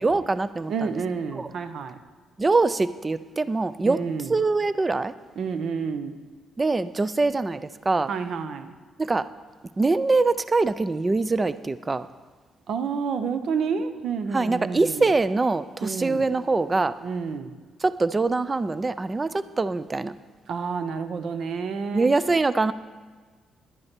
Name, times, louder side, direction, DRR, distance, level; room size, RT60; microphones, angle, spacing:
voice 1, 0.0-0.7 1.3-1.5 2.4-4.0 4.3-5.1 6.6-8.1 9.0-9.3 9.8-12.1 14.3-16.9 17.8-20.1 21.9-22.7, right 3 dB, 25° right, 15 dB, 0.4 m, -23 dB
voice 2, 0.7-2.0 3.8-4.3 5.4-6.2 8.1-8.7 12.7-15.1 15.8-16.2 17.0-17.6 20.5-22.1, right 5 dB, 65° right, 10 dB, 0.8 m, -29 dB
11.0 x 9.7 x 4.5 m, 1.4 s
cardioid pair, 90°, 0 cm